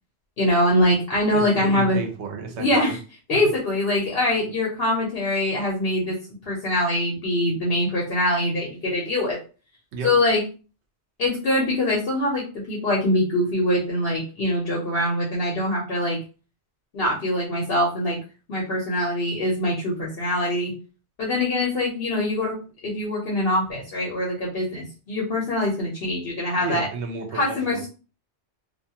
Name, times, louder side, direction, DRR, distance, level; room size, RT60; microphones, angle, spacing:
voice 1, 0.4-2.0 2.6-3.0 3.3-6.2 6.4-9.4 10.0-10.4 11.2-16.2 16.9-18.2 18.5-20.7 21.2-22.6 22.8-26.9 27.3-27.9, left 1 dB, 65° left, -3 dB, 0.9 m, -23 dB
voice 2, 1.3-3.0 3.3-3.4 9.9-10.1 26.6-27.9, right 3 dB, 85° right, 4 dB, 0.9 m, -31 dB
2.4 x 2.3 x 2.8 m, 0.35 s
omnidirectional pair, 1.1 m